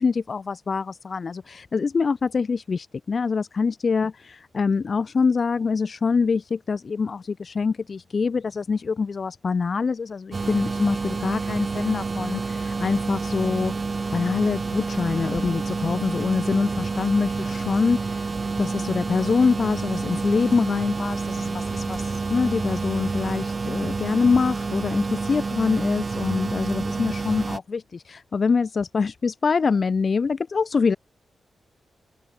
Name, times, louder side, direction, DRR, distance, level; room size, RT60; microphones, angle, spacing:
voice 1, 0.0-13.7 14.1-18.3 18.6-31.0, left 5 dB, 50° left, 2.6 m, -25 dB
sound 1, 10.3-27.6, right 4 dB, 40° right, 1.4 m, -29 dB
open air
cardioid pair, 70°, 0 cm